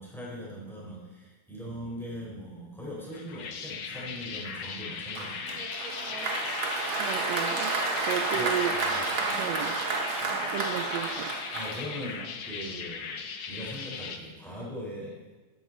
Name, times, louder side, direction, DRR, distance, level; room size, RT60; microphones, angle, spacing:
voice 1, 0.0-5.6 8.3-9.5 10.2-10.6 11.5-15.2, equal, ahead, -6 dB, 4.6 m, -41 dB
sound 1, 3.1-14.2, left 6 dB, 85° left, 1.1 m, -37 dB
Applause, 5.2-12.3, right 3 dB, 55° right, 1.5 m, -31 dB
voice 2, 7.0-9.0 9.3-9.9 10.5-11.3, right 9 dB, 75° right, 4 dB, 1.6 m, -34 dB
13.0 x 12.5 x 4.2 m, 1.3 s
omnidirectional pair, 3.8 m